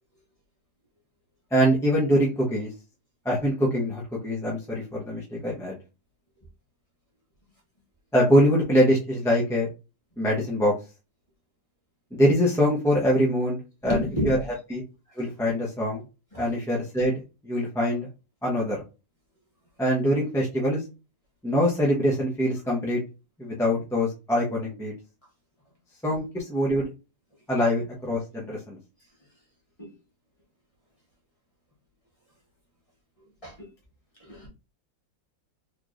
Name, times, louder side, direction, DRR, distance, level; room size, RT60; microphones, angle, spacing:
voice 1, 1.5-2.7 3.2-5.8 8.1-9.7 10.2-10.7 12.1-14.0 14.2-14.4 14.7-14.8 15.2-16.0 16.4-17.1 17.4-18.1 18.4-18.8 19.8-20.8 21.4-23.0 23.4-24.9 26.0-26.9 27.5-28.8, equal, 5° left, -4 dB, 0.5 m, -23 dB
voice 2, 13.8-14.5 16.3-16.5 29.8-29.9 33.4-33.7 34.2-34.5, equal, 20° left, -3 dB, 1.2 m, -30 dB
4.5 x 3.2 x 2.5 m, 0.29 s
omnidirectional pair, 1.9 m